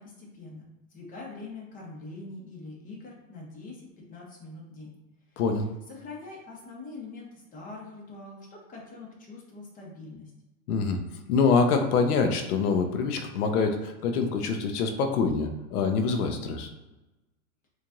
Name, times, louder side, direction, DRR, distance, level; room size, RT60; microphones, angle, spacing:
voice 1, 0.0-4.9 5.3-5.4 5.9-10.3, left 3 dB, 20° left, -2 dB, 0.9 m, -44 dB
voice 2, 5.4-5.7 10.7-11.0 11.3-16.7, left 5 dB, 85° left, 5 dB, 0.7 m, -25 dB
4.5 x 2.5 x 2.6 m, 1.1 s
supercardioid pair, 140°, 44 cm